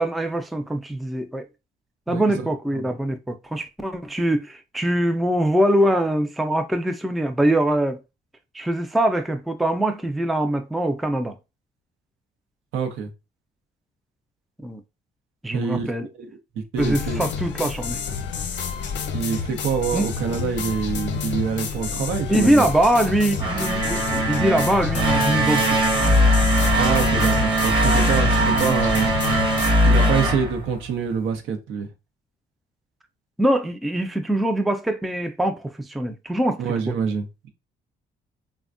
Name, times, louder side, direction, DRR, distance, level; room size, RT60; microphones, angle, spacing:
voice 1, 0.0-1.5 2.1-8.0 8.5-11.4 14.6-14.8 15.4-16.1 16.8-18.0 19.9-20.1 22.3-25.8 28.5-28.8 33.4-36.6 36.9-37.0, right 1 dB, ahead, 0.3 m, -23 dB
voice 2, 2.1-2.5 12.7-13.1 15.5-15.9 16.2-16.3 16.7-17.3 19.1-22.7 26.8-29.1 29.8-31.9 36.6-37.5, right 6 dB, 85° right, 0.7 m, -26 dB
sound 1, 16.8-29.7, left 6 dB, 65° left, 0.7 m, -29 dB
sound 2, 23.3-31.2, right 1 dB, 25° right, 0.8 m, -20 dB
3.3 x 2.2 x 2.4 m
cardioid pair, 90°, 20 cm